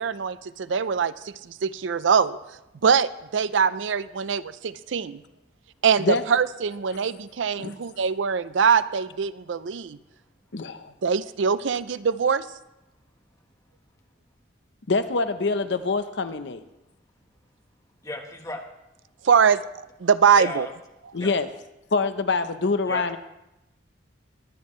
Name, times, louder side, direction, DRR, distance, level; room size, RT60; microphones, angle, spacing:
voice 1, 0.0-2.4 2.8-5.2 5.8-10.0 11.0-12.5 19.2-19.6 20.0-20.7, right 6 dB, 75° right, 15 dB, 0.5 m, -23 dB
voice 2, 10.5-10.9 14.9-16.6 21.1-21.5 21.9-23.2, left 3 dB, 65° left, 10 dB, 0.7 m, -25 dB
voice 3, 18.0-18.6 20.3-20.7 21.2-21.3 22.9-23.2, left 2 dB, 20° left, 2 dB, 1.3 m, -34 dB
22.0 x 9.3 x 3.2 m, 0.92 s
head